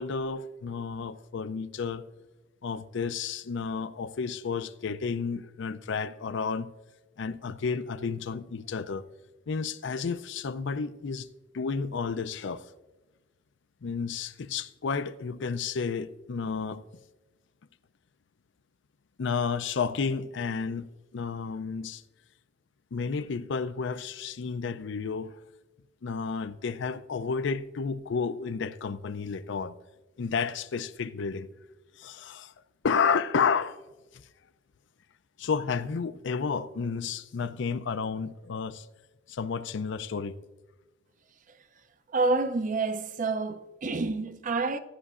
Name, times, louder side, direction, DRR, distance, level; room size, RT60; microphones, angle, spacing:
voice 1, 0.0-2.0 2.6-6.7 7.2-9.0 9.5-11.3 11.5-12.6 13.8-16.8 19.2-22.0 22.9-25.4 26.0-29.7 30.2-31.5 32.0-32.5 32.8-33.8 35.4-38.9 39.3-40.4, left 5 dB, 65° left, 0.5 m, -31 dB
voice 2, 42.1-44.8, right 3 dB, 40° right, 0.5 m, -28 dB
16.0 x 9.7 x 2.5 m
head